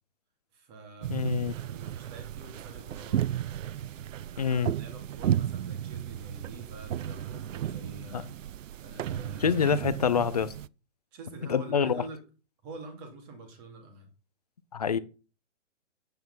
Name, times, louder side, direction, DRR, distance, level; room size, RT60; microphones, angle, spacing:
voice 1, 0.5-3.5 4.3-8.3 8.8-9.6 11.1-12.2 12.6-14.1, right 2 dB, 20° right, 2.5 m, -47 dB
sound 1, 1.0-10.7, right 10 dB, 90° right, 0.6 m, -34 dB
voice 2, 1.1-1.5 4.4-4.7 8.1-8.2 9.4-10.5 11.5-12.0 14.7-15.0, left 7 dB, 30° left, 0.6 m, -26 dB
9.3 x 9.1 x 5.5 m
hypercardioid pair, 175°, 37 cm